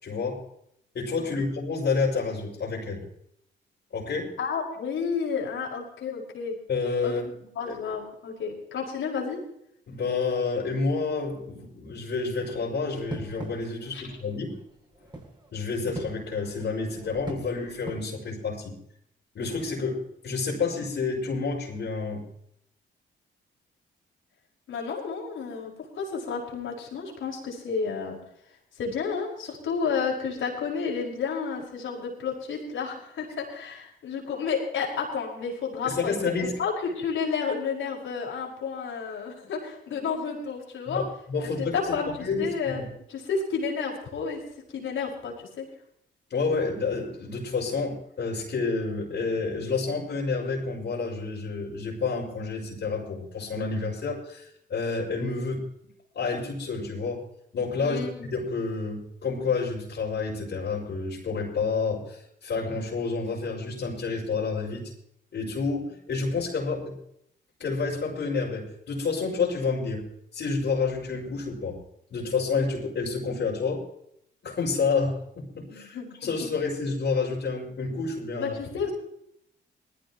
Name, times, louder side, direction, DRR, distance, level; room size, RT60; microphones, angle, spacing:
voice 1, 0.0-0.4 0.9-3.0 3.9-4.4 6.7-7.2 7.6-7.7 9.9-14.5 15.5-18.8 19.3-22.2 35.8-36.6 40.9-41.8 42.2-42.8 46.3-55.7 56.1-57.2 57.5-64.9 65.3-66.9 67.6-70.0 70.3-71.8 72.1-73.8 74.4-78.5, left 4 dB, 60° left, -5 dB, 5.8 m, -29 dB
voice 2, 4.4-6.6 7.0-7.1 7.6-9.4 13.9-14.1 24.7-28.2 28.8-41.0 41.4-42.1 42.4-42.8 43.1-44.4 44.7-45.7 57.8-58.3 75.7-76.3 78.4-78.9, left 5 dB, 75° left, -1 dB, 5.3 m, -31 dB
sound 1, 12.4-18.0, right 2 dB, 20° right, 7.9 m, -42 dB
20.0 x 15.5 x 3.1 m, 0.73 s
cardioid pair, 70°, 20 cm